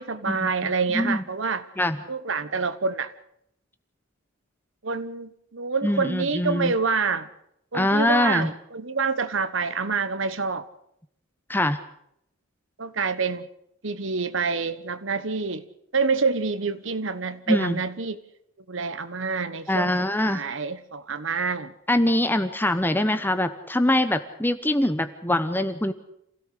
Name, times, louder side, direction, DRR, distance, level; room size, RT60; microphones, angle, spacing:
voice 1, 0.0-1.6 2.1-3.1 4.8-7.3 7.7-10.7 12.8-13.5 13.8-15.6 15.9-18.2 18.7-19.9 20.2-21.7, right 4 dB, 60° right, 14 dB, 1.2 m, -27 dB
voice 2, 0.9-1.2 1.8-2.0 5.8-6.7 7.7-8.5 11.5-11.8 17.5-17.8 19.7-20.4 21.9-25.9, left 1 dB, 10° left, 10 dB, 1.0 m, -23 dB
27.0 x 17.0 x 6.7 m, 0.75 s
head